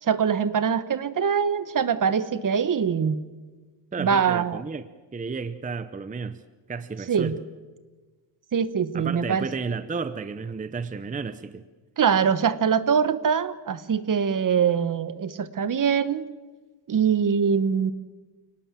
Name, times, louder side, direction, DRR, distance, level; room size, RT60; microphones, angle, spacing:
voice 1, 0.0-3.2 4.0-4.6 7.1-7.3 8.5-9.5 12.0-16.3 16.9-17.9, right 7 dB, 45° right, 15 dB, 1.2 m, -23 dB
voice 2, 3.9-4.9 5.1-6.4 6.7-7.3 8.9-11.6, right 5 dB, 20° right, 13 dB, 0.7 m, -32 dB
29.0 x 18.5 x 7.5 m, 1.3 s
wide cardioid pair, 155°, 43 cm